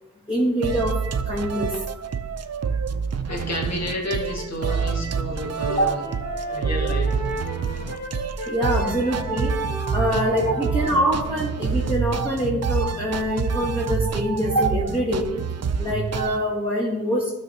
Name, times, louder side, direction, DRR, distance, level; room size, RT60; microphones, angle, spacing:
voice 1, 0.3-1.0 1.2-1.7 5.8-5.9 8.5-9.5 9.9-15.3 15.8-17.3, equal, 15° left, -5 dB, 1.9 m, -24 dB
sound 1, 0.6-16.4, right 6 dB, 55° right, 0.5 m, -27 dB
voice 2, 3.3-6.1 6.5-7.2 8.8-9.1 10.4-10.7, equal, 55° left, 0 dB, 1.7 m, -30 dB
Wind instrument woodwind instrument, 4.9-5.3 5.6-12.2, equal, 35° left, 3.1 m, -35 dB
12.5 x 6.4 x 2.8 m, 1.1 s
wide cardioid pair, 75°, 31 cm